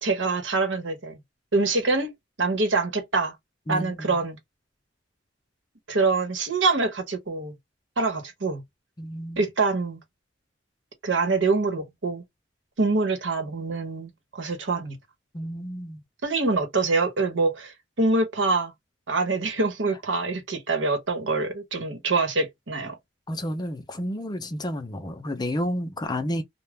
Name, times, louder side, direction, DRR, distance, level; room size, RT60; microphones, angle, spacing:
voice 1, 0.0-1.2 1.5-2.1 2.4-3.3 3.7-4.4 5.9-7.5 8.0-8.6 9.4-10.0 11.0-12.2 12.8-15.0 16.2-18.7 19.1-23.0, right 3 dB, 80° right, 1.0 m, -25 dB
voice 2, 3.7-4.2 9.0-9.5 15.3-16.0 23.3-26.4, equal, 20° left, 0.5 m, -31 dB
2.3 x 2.2 x 3.4 m
head